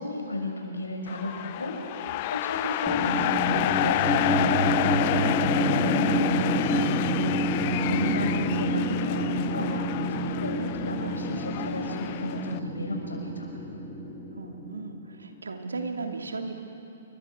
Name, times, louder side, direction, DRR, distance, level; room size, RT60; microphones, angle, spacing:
voice 1, 0.0-6.9 7.8-9.7 10.2-13.5, left 1 dB, 75° left, 1 dB, 6.4 m, -33 dB
sound 1, 1.1-12.6, left 15 dB, 40° left, 0.6 m, -30 dB
sound 2, 2.9-15.0, equal, 10° left, 3.8 m, -28 dB
voice 2, 14.3-16.5, right 3 dB, 75° right, 3 dB, 2.9 m, -35 dB
29.0 x 24.0 x 6.4 m, 2.9 s
figure-of-eight pair, 120°, 0 cm